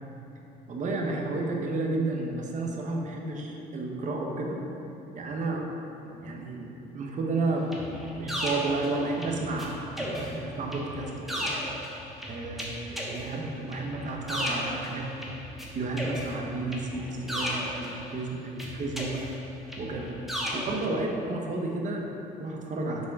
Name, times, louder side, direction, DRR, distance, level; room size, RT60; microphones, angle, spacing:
voice 1, 0.7-4.6 5.1-5.7 6.0-9.7 10.0-11.5 12.3-15.1 15.7-19.3 19.8-20.2 20.5-23.1, right 2 dB, 45° right, 0 dB, 1.0 m, -32 dB
sound 1, 7.7-9.7 10.0-15.7 16.0-18.2 18.6-20.9, equal, ahead, 1.2 m, -35 dB
6.3 x 5.3 x 4.1 m, 2.9 s
cardioid pair, 110°, 17 cm